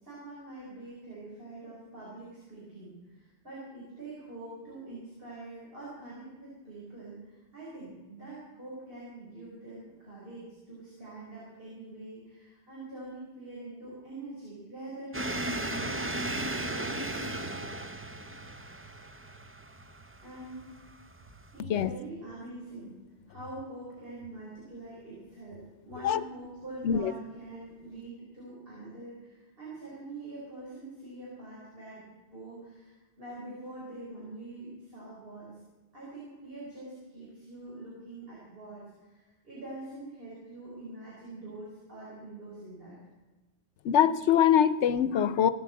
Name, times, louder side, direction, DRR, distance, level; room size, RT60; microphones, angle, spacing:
voice 1, 0.0-17.5 20.2-20.7 21.5-23.0 23.3-35.6 35.9-43.0, right 2 dB, 55° right, -7 dB, 4.6 m, -45 dB
sound 1, 15.1-21.6, right 1 dB, 15° right, 0.5 m, -36 dB
voice 2, 43.8-45.5, left 9 dB, 85° left, 15 dB, 1.0 m, -23 dB
16.0 x 8.1 x 7.5 m, 1.2 s
omnidirectional pair, 1.1 m